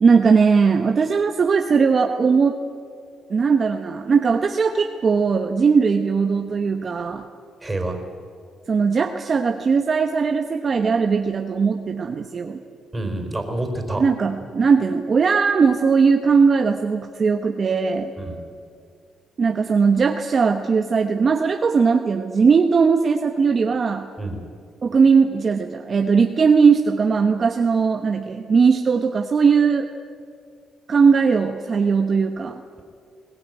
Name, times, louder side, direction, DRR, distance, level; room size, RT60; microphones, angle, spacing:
voice 1, 0.0-2.6 3.3-7.2 8.7-12.6 14.0-18.1 19.4-24.1 24.8-29.9 30.9-32.6, right 5 dB, 45° right, 5 dB, 1.1 m, -19 dB
voice 2, 7.6-8.0 12.9-14.0 18.2-18.4 24.2-24.4, right 2 dB, 15° right, 4 dB, 4.3 m, -27 dB
21.5 x 18.5 x 9.2 m, 2.3 s
cardioid pair, 90°, 0 cm